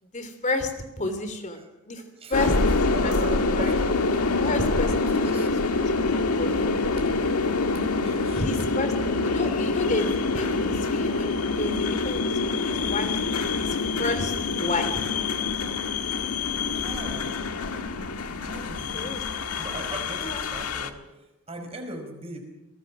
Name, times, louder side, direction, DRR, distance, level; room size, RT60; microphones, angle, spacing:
voice 1, 0.0-2.0 2.3-2.6 3.0-3.8 4.1-5.5 5.8-6.7 8.3-8.9 9.2-15.1 18.9-19.2 20.2-20.4, left 2 dB, 35° left, 9 dB, 3.1 m, -32 dB
voice 2, 1.9-4.1 5.2-5.7 8.0-8.7 16.0-16.2 16.7-17.4 18.4-19.2 19.6-22.4, right 2 dB, 25° right, 4 dB, 4.9 m, -40 dB
sound 1, 2.3-20.9, left 3 dB, 90° left, 1.6 m, -26 dB
28.0 x 19.0 x 6.2 m, 1.0 s
head